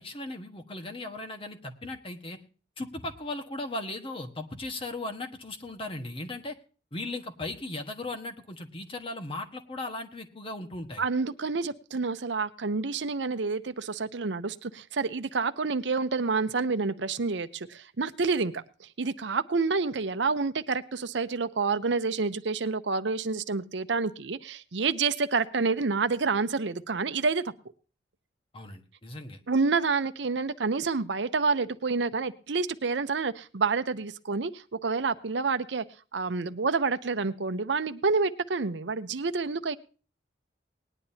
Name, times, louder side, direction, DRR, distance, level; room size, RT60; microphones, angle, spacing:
voice 1, 0.0-2.4 2.8-6.5 6.9-11.0 28.5-29.4, left 2 dB, 30° left, 5 dB, 1.4 m, -37 dB
voice 2, 11.0-18.6 19.0-27.5 29.5-35.8 36.1-39.8, right 4 dB, 75° right, 11 dB, 0.7 m, -28 dB
19.5 x 10.5 x 2.8 m, 0.36 s
head